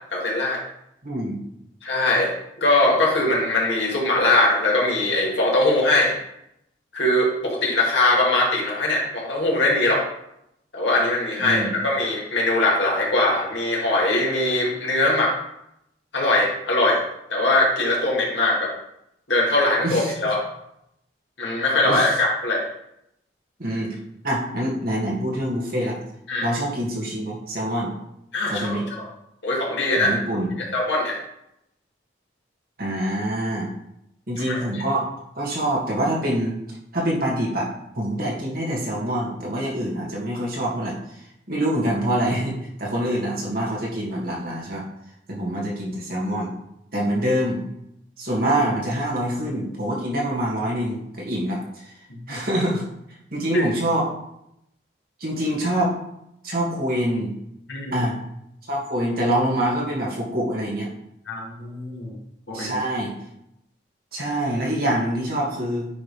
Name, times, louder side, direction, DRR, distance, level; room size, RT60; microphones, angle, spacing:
voice 1, 0.1-0.6 1.8-2.3 2.6-6.1 6.9-10.0 10.7-15.3 16.1-17.0 17.3-18.7 19.3-20.4 21.4-22.7 26.3-26.5 28.3-29.1 29.4-30.1 30.7-31.2 34.4-34.8 53.5-53.6 57.7-58.1 61.3-62.1 62.5-62.8, left 2 dB, 80° left, -3 dB, 2.1 m, -21 dB
voice 2, 1.0-1.4 11.4-11.7 19.8-20.1 21.8-22.1 23.6-24.0 24.2-26.0 26.4-27.9 28.5-28.8 30.0-30.5 32.8-33.7 34.3-35.1 35.4-36.5 36.9-37.7 37.9-41.0 41.5-44.8 45.3-46.5 46.9-47.6 48.2-51.6 52.3-52.8 53.3-54.1 55.2-55.9 56.4-57.3 57.9-58.2 58.7-60.9 62.5-63.1 64.1-65.9, right 1 dB, 55° right, -3 dB, 2.2 m, -25 dB
9.3 x 3.6 x 4.9 m, 0.80 s
head